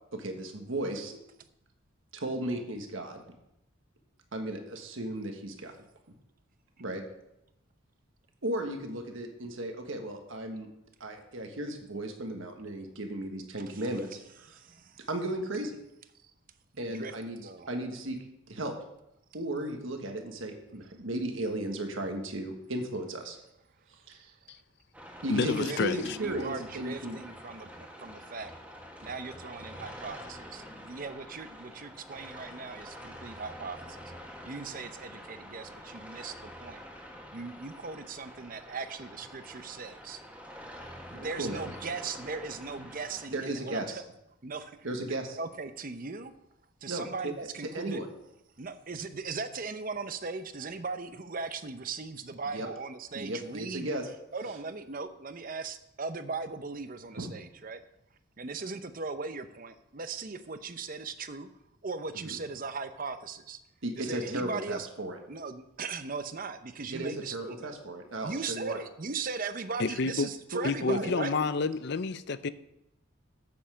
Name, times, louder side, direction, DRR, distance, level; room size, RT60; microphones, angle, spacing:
voice 1, 0.1-1.2 2.1-3.2 4.3-5.7 6.8-7.0 8.4-10.7 11.0-14.6 15.1-15.7 16.8-17.4 17.7-18.2 18.5-18.7 19.3-23.4 24.1-24.3 25.2-27.2 41.1-41.6 43.3-44.0 44.8-45.4 46.9-47.3 47.7-48.1 52.5-52.7 53.1-54.1 57.2-57.3 63.8-65.2 66.9-68.8 70.5-70.6 70.9-71.1, right 1 dB, 70° right, 1.4 m, -35 dB
voice 2, 14.4-15.1 16.2-16.3 16.7-17.7 24.4-24.6 25.4-28.5 29.0-40.2 41.1-44.0 44.4-46.3 46.8-48.0 48.6-53.9 54.3-57.8 58.4-61.5 61.8-63.6 64.0-64.9 65.3-67.7 68.2-71.4, right 4 dB, 40° right, 0.7 m, -39 dB
sound 1, 24.9-43.3, equal, 5° right, 1.5 m, -47 dB
voice 3, 25.3-26.2 69.8-70.3 70.6-72.5, left 4 dB, 55° left, 0.5 m, -29 dB
8.4 x 8.0 x 6.3 m
head